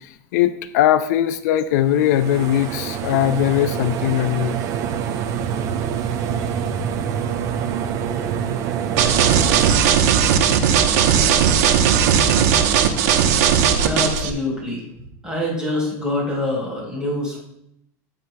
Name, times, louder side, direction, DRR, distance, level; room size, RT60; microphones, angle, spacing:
voice 1, 0.3-4.6, left 11 dB, 75° left, 11 dB, 0.5 m, -19 dB
sound 1, 1.9-9.7, right 8 dB, 35° right, 0.6 m, -26 dB
sound 2, 9.0-14.3, right 8 dB, 75° right, 1.0 m, -17 dB
voice 2, 13.8-14.8 15.2-17.4, left 1 dB, 10° right, -4 dB, 4.1 m, -25 dB
16.5 x 7.7 x 2.3 m, 0.73 s
supercardioid pair, 160°, 9 cm